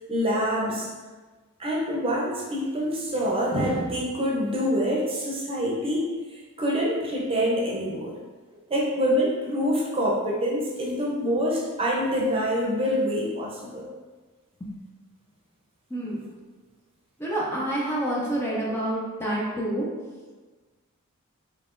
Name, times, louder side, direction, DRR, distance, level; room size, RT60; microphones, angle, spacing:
voice 1, 0.1-0.9 1.6-8.1 8.7-13.9, equal, 25° right, -3 dB, 0.7 m, -26 dB
voice 2, 15.9-16.3 17.2-19.9, right 1 dB, 10° left, -6 dB, 0.5 m, -28 dB
3.8 x 3.7 x 2.5 m, 1.3 s
head